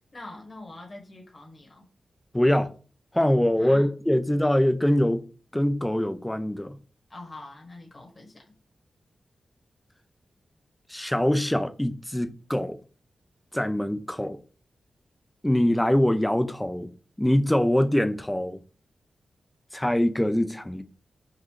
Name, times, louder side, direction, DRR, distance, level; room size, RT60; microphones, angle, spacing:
voice 1, 0.1-1.9 3.6-3.9 7.1-8.4, left 2 dB, 40° left, 1.2 m, -44 dB
voice 2, 2.3-2.7 3.1-5.2 5.5-6.8 10.9-12.8 13.5-14.4 15.4-16.9 17.2-18.6 19.7-20.8, left 1 dB, 10° left, 0.4 m, -23 dB
4.0 x 2.5 x 3.1 m
cardioid pair, 65°, 0 cm